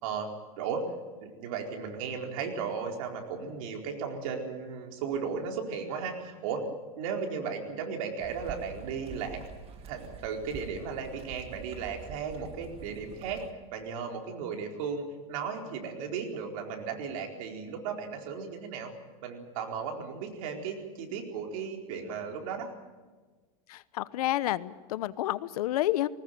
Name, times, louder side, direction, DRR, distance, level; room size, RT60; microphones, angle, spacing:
voice 1, 0.0-0.9 1.2-6.6 7.0-9.4 9.8-13.4 13.7-18.9 19.2-22.7, right 6 dB, 65° right, 2 dB, 4.4 m, -35 dB
sound 1, 8.2-13.5, right 5 dB, 30° right, 2.0 m, -46 dB
voice 2, 23.7-26.1, left 14 dB, 85° left, 17 dB, 0.9 m, -30 dB
20.5 x 19.0 x 9.2 m, 1.3 s
supercardioid pair, 145°, 19 cm